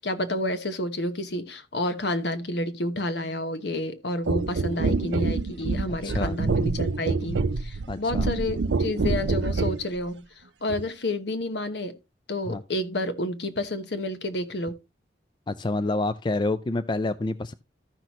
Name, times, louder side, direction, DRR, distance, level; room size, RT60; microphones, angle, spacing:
voice 1, 0.0-10.2 10.6-12.0 12.3-14.8, left 1 dB, 70° left, 1.1 m, -30 dB
sound 1, 4.3-9.8 10.7-10.9, right 3 dB, 80° right, 0.5 m, -26 dB
voice 2, 6.0-6.4 7.9-8.3 12.5-12.6 15.5-17.5, left 2 dB, 25° left, 0.4 m, -28 dB
14.0 x 5.9 x 3.0 m
head